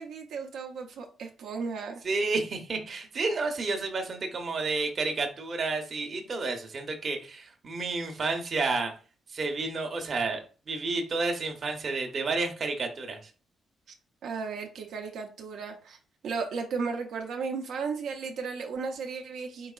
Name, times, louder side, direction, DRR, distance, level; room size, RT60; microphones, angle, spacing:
voice 1, 0.0-2.0 14.2-16.0 16.2-19.7, right 5 dB, 65° right, 3 dB, 0.6 m, -35 dB
voice 2, 2.0-8.9 9.3-10.4 10.7-13.3, right 3 dB, 30° right, 4 dB, 0.8 m, -30 dB
4.6 x 4.5 x 2.4 m, 0.37 s
cardioid pair, 170°, 0 cm